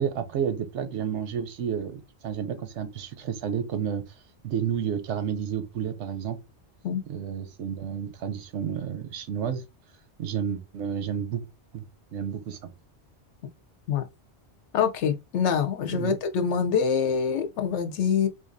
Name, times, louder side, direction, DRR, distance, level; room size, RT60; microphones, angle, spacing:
voice 1, 0.0-4.0 4.4-6.4 7.1-9.6 10.2-11.4 11.7-11.8 12.1-12.7 15.9-16.1, right 8 dB, 90° right, 0.9 m, -31 dB
voice 2, 14.7-18.3, left 7 dB, 85° left, 0.9 m, -25 dB
4.0 x 2.5 x 2.5 m
omnidirectional pair, 1.1 m